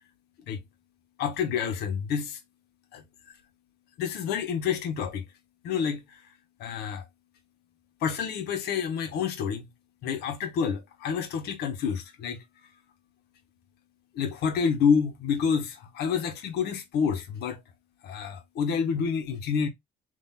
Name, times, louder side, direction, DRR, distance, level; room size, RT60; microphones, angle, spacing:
voice 1, 1.2-2.4 2.9-3.0 4.0-5.2 5.6-6.2 6.6-7.0 8.0-9.7 10.0-12.4 14.1-17.6 18.0-19.7, left 6 dB, 75° left, 1.3 m, -28 dB
3.8 x 2.8 x 4.2 m
cardioid pair, 110°, 17 cm